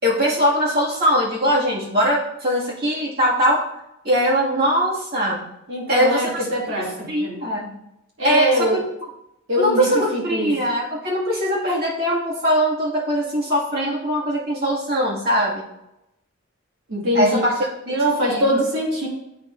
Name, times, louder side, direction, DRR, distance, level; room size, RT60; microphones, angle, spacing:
voice 1, 0.0-3.7 4.0-5.4 5.9-6.5 6.8-7.7 8.2-8.8 9.6-15.6 17.1-18.4, equal, 50° right, -6 dB, 2.2 m, -21 dB
voice 2, 5.7-7.3 8.2-8.8 9.5-10.5 16.9-17.4 17.9-19.1, equal, 80° right, -5 dB, 2.2 m, -22 dB
9.7 x 3.8 x 2.7 m, 0.84 s
head